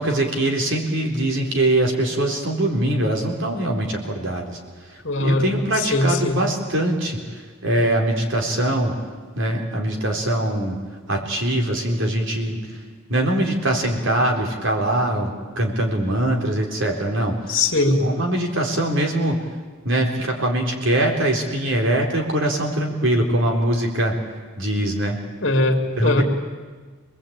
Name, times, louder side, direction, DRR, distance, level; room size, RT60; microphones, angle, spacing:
voice 1, 0.0-4.6 5.2-8.9 9.3-10.8 11.1-12.6 13.1-17.5 18.0-19.4 19.8-24.1 24.6-25.2 26.0-26.2, right 1 dB, 60° right, 2 dB, 3.9 m, -22 dB
voice 2, 5.0-6.4 17.5-18.0 25.4-26.2, left 2 dB, 55° left, 4 dB, 2.7 m, -20 dB
26.5 x 20.5 x 8.8 m, 1.4 s
head